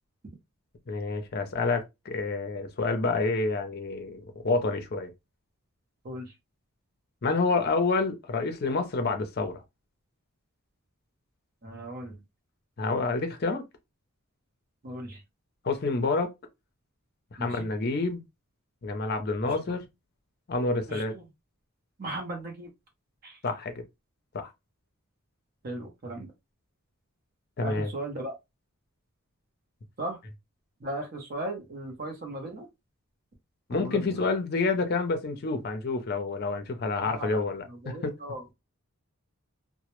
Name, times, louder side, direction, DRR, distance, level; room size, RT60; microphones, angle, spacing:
voice 1, 0.9-5.1 7.2-9.6 12.8-13.7 15.6-16.3 17.3-18.2 18.8-19.8 20.5-21.1 23.4-23.8 24.3-24.5 27.6-27.9 33.7-38.2, left 3 dB, 45° left, 0.5 m, -28 dB
voice 2, 11.6-12.2 14.8-15.2 17.4-17.7 19.4-19.5 20.9-21.2 22.0-22.7 23.2-23.4 25.6-26.3 27.6-28.3 30.0-30.2 30.8-32.7 33.7-34.3 37.0-37.3 37.7-38.5, right 1 dB, 40° right, 0.6 m, -37 dB
2.0 x 2.0 x 2.9 m
head